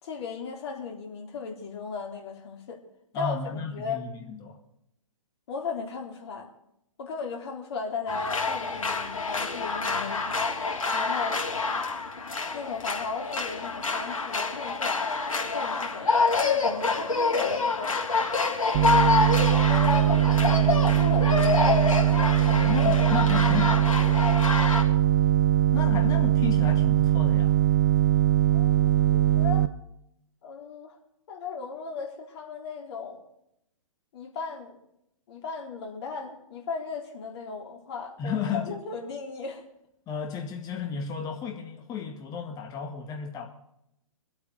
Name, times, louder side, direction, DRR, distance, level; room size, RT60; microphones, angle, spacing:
voice 1, 0.0-2.8 3.1-4.0 5.5-6.5 7.0-10.6 10.9-11.4 12.5-15.1 15.5-16.1 16.4-18.0 19.7-21.8 28.5-29.7 30.4-31.0 31.3-33.3 34.1-34.8 35.3-39.6, left 5 dB, 45° left, 1 dB, 3.7 m, -36 dB
voice 2, 3.1-4.6 22.5-23.9 25.7-27.6 38.2-38.8 40.1-43.5, left 7 dB, 20° left, 3 dB, 2.0 m, -33 dB
sound 1, 8.1-24.8, left 4 dB, 70° left, 3.5 m, -27 dB
sound 2, 18.7-29.7, right 13 dB, 35° right, 0.7 m, -21 dB
25.0 x 8.7 x 4.9 m, 0.78 s
figure-of-eight pair, 125°, 18 cm